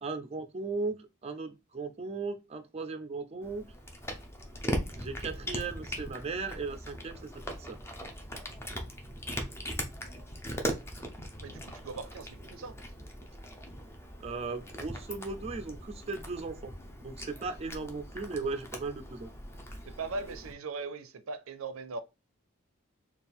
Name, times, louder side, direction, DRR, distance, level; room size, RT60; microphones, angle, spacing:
voice 1, 0.0-3.7 5.0-7.3 7.7-7.8 14.2-16.7 17.0-19.3, right 4 dB, 30° right, 0.4 m, -37 dB
Cat, 3.4-20.5, equal, 10° left, 0.6 m, -40 dB
voice 2, 11.4-12.8 19.9-22.0, right 3 dB, 85° right, 0.5 m, -39 dB
4.3 x 2.3 x 3.5 m
head